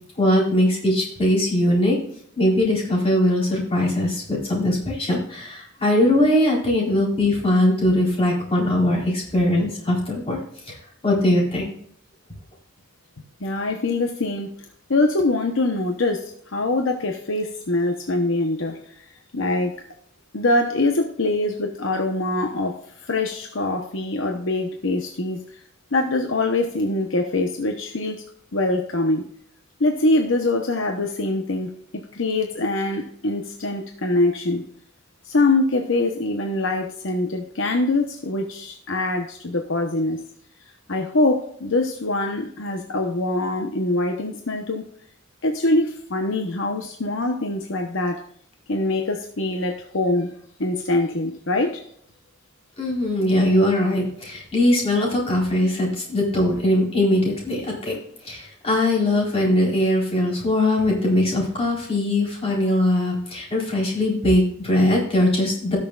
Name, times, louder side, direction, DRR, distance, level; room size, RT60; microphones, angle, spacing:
voice 1, 0.2-2.0 2.4-10.4 10.7-10.8 11.0-11.7 52.8-58.0 58.2-65.8, left 1 dB, 30° left, -3 dB, 4.2 m, -21 dB
voice 2, 13.4-14.5 14.9-19.0 19.3-19.7 20.3-25.4 25.9-28.2 28.5-29.2 29.8-34.6 35.2-40.2 40.9-44.8 45.4-48.2 48.7-50.3 50.6-51.8, left 2 dB, 65° left, 4 dB, 1.0 m, -23 dB
18.0 x 6.7 x 2.5 m, 0.65 s
head